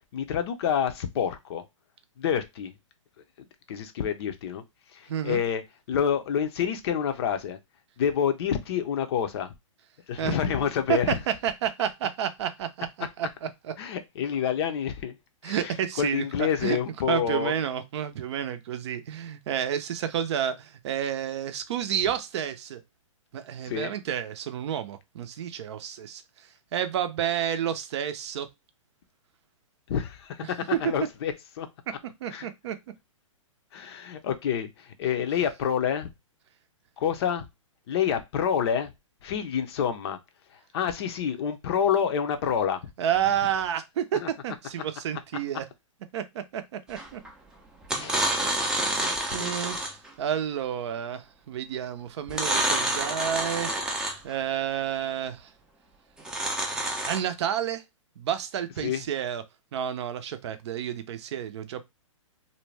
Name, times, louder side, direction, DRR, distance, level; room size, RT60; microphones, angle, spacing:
voice 1, 0.1-1.6 2.2-2.7 3.7-4.6 4.9-5.6 5.9-7.6 8.0-9.5 10.1-11.2 13.8-15.2 15.4-17.6 23.7-23.9 29.9-31.7 32.3-32.5 33.7-36.1 37.0-37.5 37.9-38.9 39.2-40.2 40.7-42.8 44.2-44.3 47.9-48.5 49.4-49.5 58.8-59.0, left 8 dB, 50° left, 0.6 m, -28 dB
voice 2, 5.1-5.4 10.2-10.3 10.9-12.9 13.2-13.7 15.4-16.8 17.1-22.8 23.3-26.2 26.7-28.5 30.7-30.9 32.0-32.8 43.0-45.7 46.1-47.2 48.8-53.7 54.2-55.5 56.7-57.8 58.2-59.4 59.7-61.8, right 9 dB, 55° right, 0.5 m, -30 dB
sound 1, 47.0-47.3 47.8-50.1 52.3-54.3 56.2-57.2, right 1 dB, 5° right, 0.5 m, -28 dB
2.6 x 2.1 x 3.2 m
hypercardioid pair, 130°, 17 cm